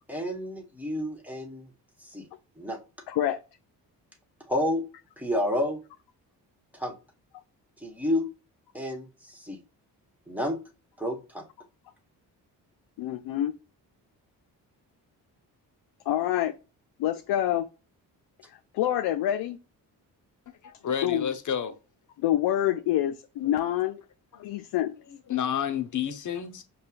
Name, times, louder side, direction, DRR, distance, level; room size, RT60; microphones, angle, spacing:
voice 1, 0.1-1.7 2.0-2.3 2.6-2.8 4.5-4.8 5.2-5.8 6.7-6.9 7.8-8.3 8.7-9.6 10.3-10.6 11.0-11.4, left 1 dB, 5° right, 1.3 m, -30 dB
voice 2, 3.1-3.4 13.0-13.5 16.1-16.5 17.0-17.7 18.5-19.6 21.0-21.3 22.2-24.0 24.4-25.0, left 12 dB, 70° left, 0.5 m, -27 dB
voice 3, 20.6-21.8 24.3-24.5 25.3-26.6, left 8 dB, 50° left, 0.8 m, -30 dB
5.4 x 2.3 x 2.5 m
supercardioid pair, 65°, 40 cm